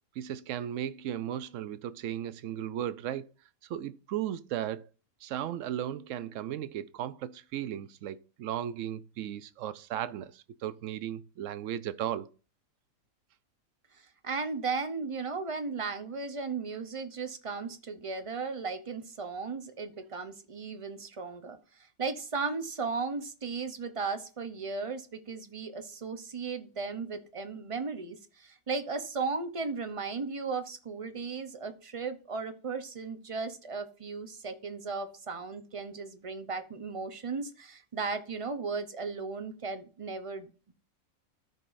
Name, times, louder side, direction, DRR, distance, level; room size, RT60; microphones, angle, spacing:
voice 1, 0.2-3.3 3.7-4.9 5.2-12.3, right 11 dB, 70° right, 0.9 m, -36 dB
voice 2, 14.2-21.6 22.0-40.5, right 4 dB, 30° right, 0.6 m, -36 dB
13.5 x 5.3 x 2.5 m
omnidirectional pair, 1.5 m